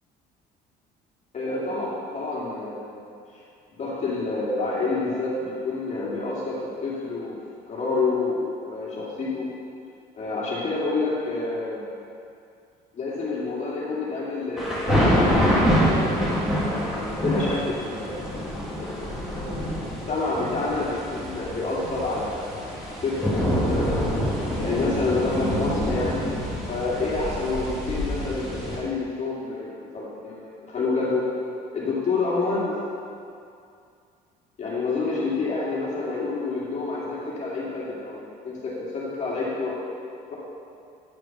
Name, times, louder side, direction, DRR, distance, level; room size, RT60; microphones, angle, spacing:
voice 1, 1.3-3.1 3.7-7.4 7.7-9.5 10.1-11.9 12.9-15.4 16.8-24.1 24.6-26.2 26.7-31.3 31.7-32.7 34.6-39.8 40.3-40.4, left 3 dB, 45° left, -7 dB, 2.3 m, -28 dB
sound 1, 14.6-28.8, equal, 5° right, 2.2 m, -26 dB
9.4 x 4.9 x 5.9 m, 2.4 s
cardioid pair, 110°, 17 cm